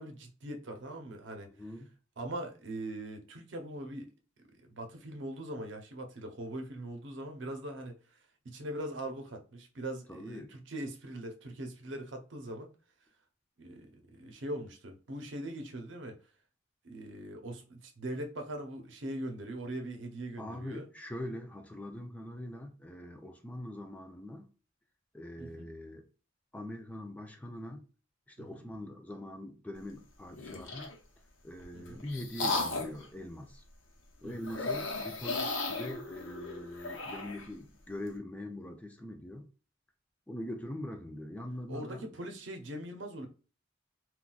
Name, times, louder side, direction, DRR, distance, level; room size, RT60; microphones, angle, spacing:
voice 1, 0.0-1.5 2.2-4.1 4.6-8.0 8.4-12.7 13.6-13.9 14.1-16.2 16.8-20.9 25.4-25.7 28.4-28.7 31.7-32.0 34.2-34.5 41.7-43.3, right 1 dB, 70° right, 0.7 m, -41 dB
voice 2, 1.5-1.9 10.1-10.5 20.4-24.5 25.1-26.0 26.5-27.8 28.3-30.9 31.4-33.6 34.2-39.5 40.3-42.0, left 1 dB, 10° left, 0.3 m, -43 dB
sound 1, 30.3-31.0 31.6-33.1 34.4-37.5, left 3 dB, 80° left, 0.7 m, -35 dB
3.9 x 2.3 x 2.3 m
head